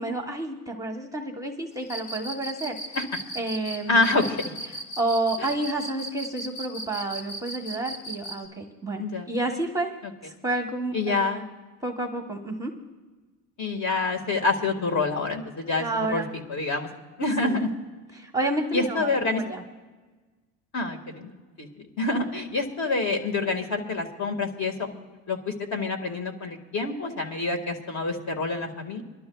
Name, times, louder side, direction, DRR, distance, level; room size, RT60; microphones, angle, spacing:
voice 1, 0.0-3.0 3.3-4.0 5.0-9.9 10.2-11.4 11.8-12.7 15.8-16.3 17.4-17.6 18.2-19.6, right 2 dB, 5° right, 2 dB, 1.0 m, -30 dB
Cricket, 1.8-8.4, right 1 dB, 65° left, 2.2 m, -36 dB
voice 2, 3.9-4.4 5.4-5.6 9.0-9.3 10.9-11.5 13.6-16.2 16.5-16.9 17.2-17.7 18.7-19.4 20.7-21.3 21.6-24.9 25.3-29.0, left 3 dB, 40° left, 4 dB, 1.8 m, -27 dB
27.5 x 12.0 x 2.3 m, 1.3 s
supercardioid pair, 120°, 45 cm